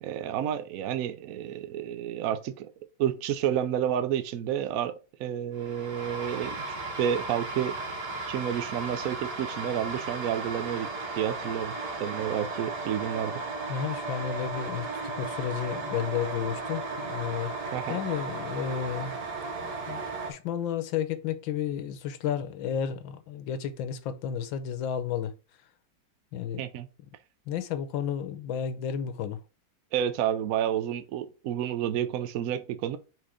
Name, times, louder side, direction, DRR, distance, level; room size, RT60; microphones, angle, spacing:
voice 1, 0.0-2.7 3.0-7.8 8.3-10.9 11.2-11.7 12.0-13.5 17.7-18.0 26.6-26.9 29.9-33.0, right 10 dB, 80° right, 0.8 m, -30 dB
sound 1, 5.6-20.3, right 3 dB, 60° right, 1.8 m, -35 dB
voice 2, 13.7-14.9 15.2-17.5 17.9-19.1 19.6-20.0 20.3-25.3 26.3-26.6 27.5-29.4, left 8 dB, 80° left, 1.5 m, -32 dB
4.5 x 4.4 x 4.9 m
omnidirectional pair, 2.1 m